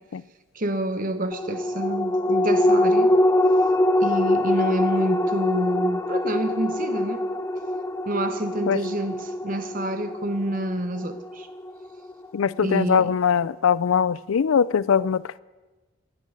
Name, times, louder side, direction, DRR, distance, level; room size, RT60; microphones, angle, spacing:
voice 1, 0.5-3.1 4.0-7.2 8.0-11.5 12.6-13.2, right 1 dB, 40° right, 9 dB, 1.0 m, -28 dB
sound 1, 1.3-12.1 12.5-12.6, left 1 dB, 15° left, 0.4 m, -23 dB
voice 2, 12.3-15.4, left 7 dB, 75° left, 19 dB, 0.4 m, -21 dB
12.5 x 10.5 x 9.1 m, 1.2 s
head